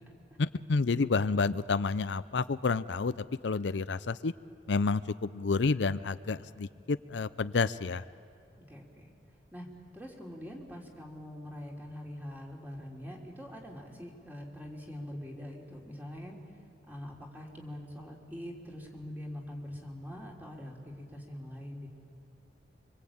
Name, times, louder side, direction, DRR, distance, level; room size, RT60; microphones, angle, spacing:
voice 1, 0.4-3.1 3.4-4.3 4.7-8.0, left 4 dB, 80° left, 14 dB, 0.6 m, -29 dB
voice 2, 8.6-9.1 9.5-9.7 9.9-16.4 16.9-21.9, left 1 dB, 10° right, -1 dB, 3.5 m, -44 dB
25.5 x 25.0 x 8.7 m, 2.4 s
head